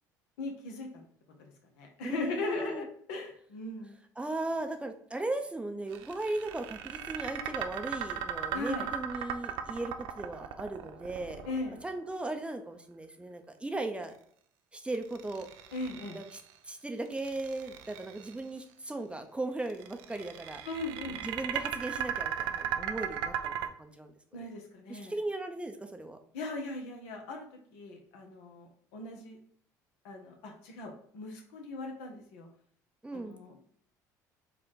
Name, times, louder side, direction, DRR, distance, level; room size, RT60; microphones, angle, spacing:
voice 1, 0.4-1.0 1.4-4.0 8.5-8.9 11.4-11.8 15.7-16.2 20.6-21.2 24.3-25.1 26.3-27.5 27.7-29.4 30.0-32.5 33.1-33.6, left 2 dB, 75° left, 2 dB, 1.1 m, -39 dB
voice 2, 2.0-2.8 4.2-11.4 11.8-14.1 14.7-15.5 16.1-16.3 16.7-20.6 21.2-24.5 24.9-26.2 33.0-33.4, right 2 dB, 10° right, 6 dB, 0.6 m, -37 dB
sound 1, 5.9-12.1 14.9-16.5 17.1-18.4 19.7-23.7, right 9 dB, 70° right, 0.5 m, -37 dB
4.7 x 2.5 x 3.8 m, 0.62 s
hypercardioid pair, 70°, 9 cm